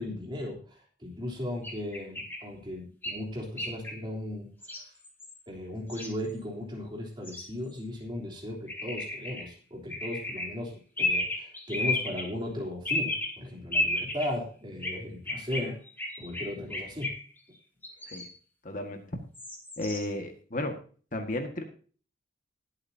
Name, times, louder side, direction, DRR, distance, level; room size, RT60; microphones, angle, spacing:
voice 1, 0.0-4.9 5.5-15.8 16.2-17.2, left 1 dB, 25° right, -1 dB, 3.4 m, -37 dB
sound 1, 1.6-2.4 3.0-3.1 3.6-3.9 4.6-4.8 5.0-5.4 5.9-6.3 7.2-7.4 8.7-9.4 9.9-10.5 11.0-12.2 12.8-13.3 13.7-14.3 14.8-14.9 15.3-17.4 17.8-18.3 19.3-20.1, left 2 dB, 10° left, 2.6 m, -32 dB
voice 2, 18.6-19.0 19.8-20.8 21.1-21.6, left 1 dB, 45° left, 5 dB, 1.7 m, -33 dB
20.5 x 8.2 x 2.8 m, 0.40 s
head